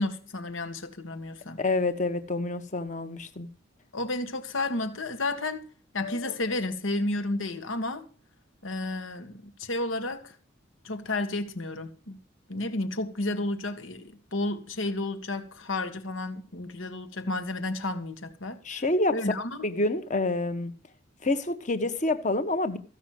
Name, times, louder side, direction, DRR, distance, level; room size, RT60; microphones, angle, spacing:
voice 1, 0.0-1.6 3.9-5.6 5.9-8.0 8.6-10.3 10.8-12.2 12.5-18.6 19.1-19.6, left 2 dB, 85° left, 1.8 m, -32 dB
voice 2, 1.6-3.5 18.6-19.2 19.6-20.7 21.2-22.8, left 2 dB, 40° left, 1.3 m, -27 dB
15.0 x 6.3 x 7.6 m
head